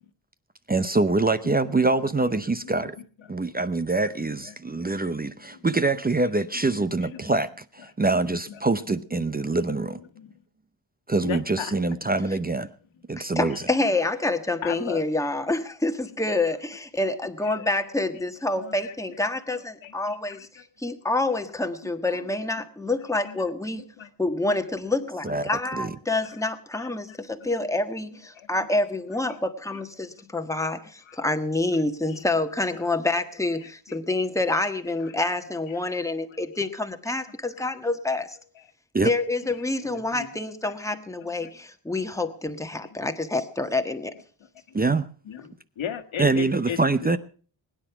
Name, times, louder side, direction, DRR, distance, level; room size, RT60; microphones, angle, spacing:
voice 1, 0.7-3.0 3.3-10.0 11.1-12.7 13.1-13.6 25.2-25.4 25.7-25.9 38.9-39.1 44.7-45.1 46.2-47.2, right 3 dB, 20° right, 0.7 m, -24 dB
voice 2, 4.5-4.8 5.5-5.7 6.7-6.8 7.1-7.3 9.1-9.3 10.2-10.3 11.2-11.7 14.6-15.0 17.4-17.7 18.6-18.9 19.8-20.6 22.1-22.3 23.2-23.4 23.7-24.1 24.5-24.6 26.8-27.2 27.6-27.7 28.3-28.7 29.3-29.4 31.1-31.2 32.1-32.2 33.6-34.0 35.0-35.1 37.6-37.7 39.9-40.3 40.6-41.1 41.4-41.5 42.9-43.0 45.3-46.8, left 8 dB, 85° left, 2.1 m, -38 dB
voice 3, 13.2-23.8 24.2-38.4 39.0-44.1, left 2 dB, 5° left, 1.4 m, -27 dB
21.0 x 10.0 x 5.9 m
wide cardioid pair, 125°, 46 cm